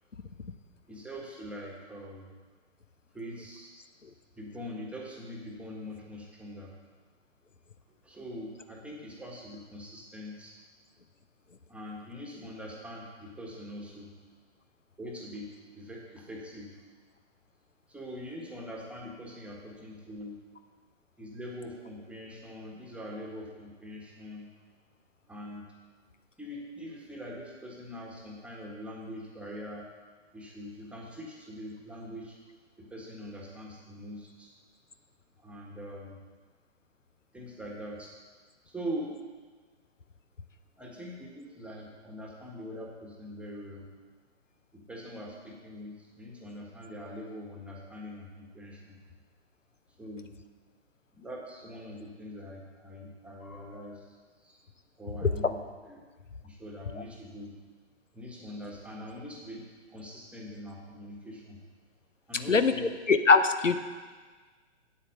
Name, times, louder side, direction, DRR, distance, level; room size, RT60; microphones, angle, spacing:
voice 1, 0.9-2.3 3.1-3.7 4.4-6.7 8.0-10.5 11.7-14.1 15.0-16.8 17.9-20.4 21.2-24.5 25.3-25.7 26.4-29.9 30.3-32.4 32.8-34.5 35.4-36.2 37.3-38.1 38.6-39.2 40.8-43.9 44.7-49.0 50.0-50.3 51.1-54.6 55.0-55.6 55.9-56.0 56.4-57.6 58.1-61.6 62.3-62.9, equal, 5° right, -2 dB, 1.4 m, -43 dB
voice 2, 63.1-63.8, left 4 dB, 85° left, 10 dB, 0.8 m, -21 dB
8.6 x 8.5 x 6.6 m, 1.4 s
figure-of-eight pair, 120°, 37 cm